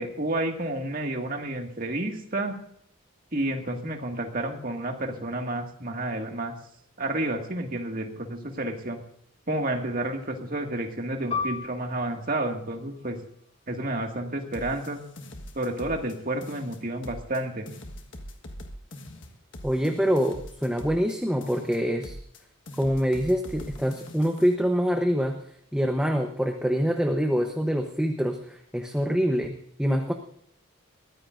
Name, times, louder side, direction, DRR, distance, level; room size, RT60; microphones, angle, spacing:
voice 1, 0.0-2.5 3.3-6.5 7.0-9.0 9.5-13.2 13.7-15.0 15.6-17.7, right 1 dB, 40° right, 3 dB, 2.0 m, -30 dB
Piano, 11.3-16.3 16.7-16.8 17.6-18.0, left 5 dB, 25° left, 1.3 m, -38 dB
sound 1, 14.5-16.2 16.4-17.4 17.7-21.2 21.4-22.4 22.7-24.5, left 1 dB, 55° left, 1.5 m, -42 dB
voice 2, 19.6-22.2 22.8-25.4 25.7-29.5 29.8-30.1, equal, 5° right, 4 dB, 0.9 m, -25 dB
22.0 x 15.0 x 2.6 m, 0.68 s
head